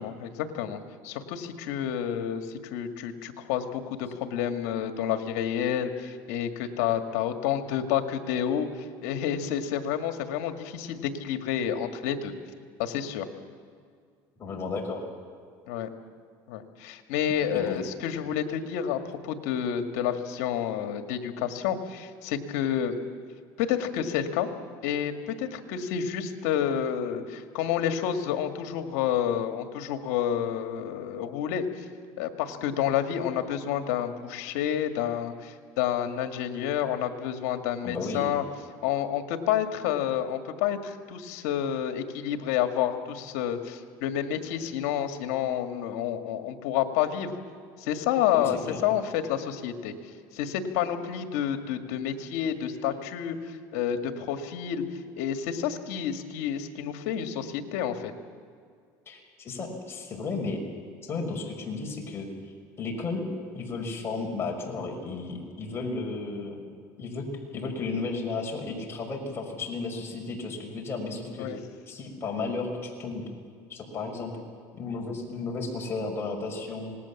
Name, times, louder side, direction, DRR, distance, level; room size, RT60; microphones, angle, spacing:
voice 1, 0.0-8.7 9.0-12.3 12.8-13.3 15.7-15.9 16.5-23.0 23.6-24.5 24.8-31.7 32.2-38.4 38.8-47.3 47.8-49.9 50.3-53.4 53.7-54.8 55.2-58.1 71.4-71.6, left 9 dB, 85° left, 6 dB, 2.0 m, -29 dB
voice 2, 14.4-15.0 17.5-17.8 37.8-38.3 48.3-48.8 59.1-60.6 61.0-62.3 62.8-63.3 63.5-66.6 67.0-71.5 71.9-73.3 73.7-74.3 74.8-77.0, left 3 dB, 30° left, 0 dB, 5.7 m, -33 dB
26.5 x 19.5 x 7.3 m, 2.1 s
supercardioid pair, 115°, 8 cm